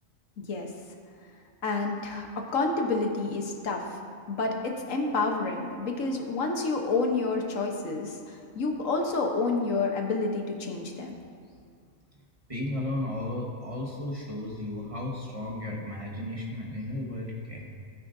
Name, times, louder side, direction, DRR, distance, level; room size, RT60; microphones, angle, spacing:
voice 1, 0.4-0.7 1.6-4.0 4.3-11.2, left 3 dB, 70° left, 2 dB, 1.4 m, -29 dB
voice 2, 12.5-17.7, left 1 dB, 25° right, -3 dB, 1.3 m, -34 dB
16.0 x 8.8 x 2.6 m, 2.3 s
omnidirectional pair, 1.4 m